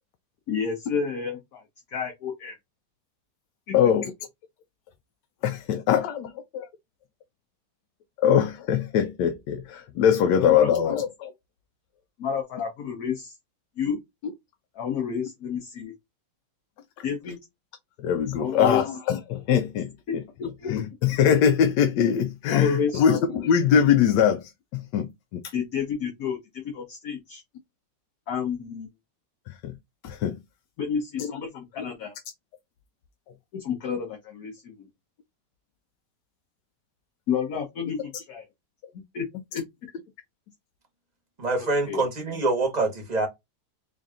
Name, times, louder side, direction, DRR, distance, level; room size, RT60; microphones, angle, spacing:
voice 1, 0.5-1.6 1.9-2.6 3.7-3.8 10.3-10.7 12.2-13.3 13.8-14.0 14.7-15.9 17.0-17.4 18.4-18.8 20.6-20.7 22.5-23.5 25.5-27.4 28.3-28.9 30.8-32.1 33.5-34.9 37.3-38.5 39.1-39.2 39.5-39.6 41.9-42.0, left 7 dB, 60° left, 1.4 m, -30 dB
voice 2, 3.7-4.1 5.4-6.7 8.2-11.3 18.0-19.9 20.7-25.4 29.6-29.7 30.0-30.4 31.2-31.3, left 8 dB, 75° left, 1.2 m, -22 dB
voice 3, 41.4-43.3, right 3 dB, 30° right, 0.9 m, -25 dB
3.8 x 2.6 x 3.6 m
omnidirectional pair, 1.9 m